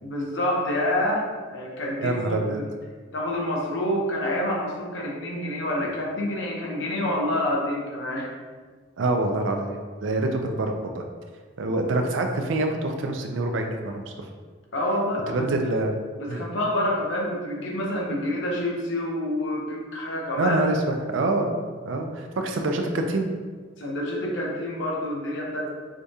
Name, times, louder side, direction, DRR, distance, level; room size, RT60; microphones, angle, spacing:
voice 1, 0.0-2.7 3.1-8.3 14.7-15.7 16.2-20.6 23.8-25.7, left 1 dB, 70° left, -2 dB, 0.8 m, -27 dB
voice 2, 2.0-2.6 9.0-11.0 11.6-14.3 15.3-15.9 16.3-16.4 20.4-21.5 21.9-23.3, right 2 dB, 75° right, 4 dB, 0.4 m, -26 dB
4.9 x 2.3 x 2.7 m, 1.5 s
head